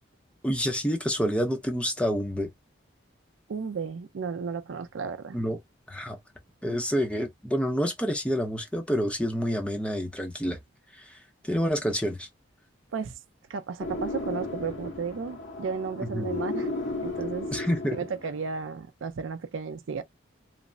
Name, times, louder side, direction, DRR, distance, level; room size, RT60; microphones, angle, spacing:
voice 1, 0.4-2.5 5.3-5.6 5.9-6.2 6.6-10.6 10.9-12.3 16.1-16.3 17.5-18.0, equal, 5° left, 0.5 m, -28 dB
voice 2, 3.5-5.4 12.9-13.1 13.5-16.7 17.0-17.5 17.9-20.0, right 5 dB, 85° right, 0.4 m, -34 dB
sound 1, 13.8-18.4, left 2 dB, 70° left, 0.9 m, -34 dB
3.1 x 2.0 x 2.5 m
head